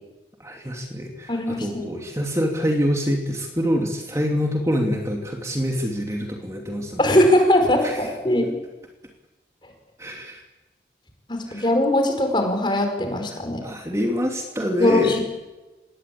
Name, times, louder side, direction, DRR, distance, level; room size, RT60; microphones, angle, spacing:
voice 1, 0.4-7.0 7.8-8.0 10.0-10.4 11.5-11.7 13.6-15.2, equal, 15° right, 1 dB, 2.7 m, -25 dB
voice 2, 1.3-1.9 7.0-8.5 11.3-13.6 14.8-15.2, left 1 dB, 25° left, 4 dB, 5.0 m, -20 dB
26.5 x 20.0 x 8.7 m, 1.1 s
head